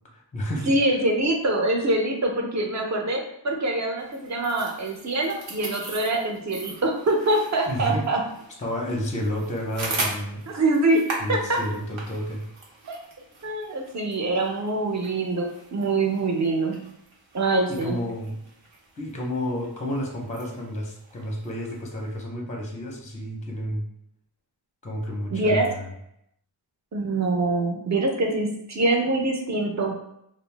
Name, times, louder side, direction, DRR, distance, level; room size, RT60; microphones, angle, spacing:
voice 1, 0.1-0.7 7.7-8.0 8.6-10.4 11.2-12.4 17.7-18.3 19.0-23.8 24.8-25.9, equal, 15° left, 0 dB, 0.6 m, -30 dB
voice 2, 0.7-8.2 10.5-11.6 12.9-13.0 13.4-16.8 17.3-18.0 25.3-25.7 26.9-29.9, right 2 dB, 40° right, 1 dB, 0.6 m, -24 dB
sound 1, 4.0-22.2, right 2 dB, 85° right, 0.8 m, -40 dB
2.6 x 2.0 x 3.2 m, 0.77 s
wide cardioid pair, 100°, 46 cm